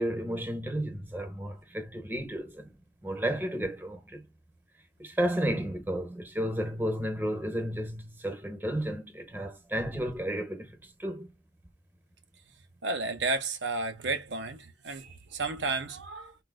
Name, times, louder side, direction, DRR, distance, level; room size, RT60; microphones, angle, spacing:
voice 1, 0.0-2.7 3.0-4.2 5.0-11.3, right 1 dB, 10° right, 0.6 m, -32 dB
voice 2, 12.8-16.4, right 3 dB, 85° right, 0.7 m, -32 dB
4.0 x 2.3 x 2.3 m
head